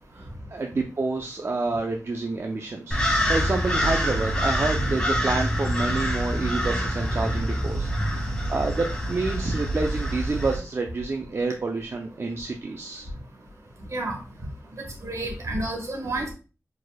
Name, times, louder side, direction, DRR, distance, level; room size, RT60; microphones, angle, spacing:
voice 1, 0.1-13.1, right 3 dB, 50° right, 3 dB, 0.5 m, -29 dB
sound 1, 2.9-10.6, equal, 15° left, 1.7 m, -26 dB
voice 2, 14.8-16.3, right 2 dB, 70° right, 1 dB, 1.6 m, -30 dB
5.0 x 4.1 x 2.2 m, 0.33 s
wide cardioid pair, 65°, 5 cm